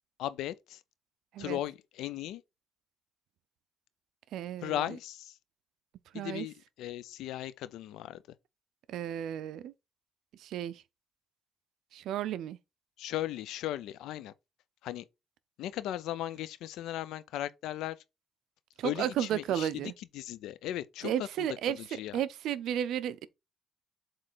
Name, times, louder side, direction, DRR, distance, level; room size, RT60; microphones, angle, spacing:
voice 1, 0.2-0.8 1.4-2.4 4.6-5.4 6.1-8.2 13.0-14.3 14.8-15.1 15.6-18.0 18.8-22.2, left 13 dB, 90° left, 0.6 m, -37 dB
voice 2, 4.3-4.7 6.1-6.5 8.9-9.7 10.4-10.8 11.9-12.6 18.8-19.9 21.0-21.8 22.1-23.3, right 10 dB, 80° right, 0.6 m, -33 dB
7.7 x 3.2 x 4.1 m
cardioid pair, 90°, 0 cm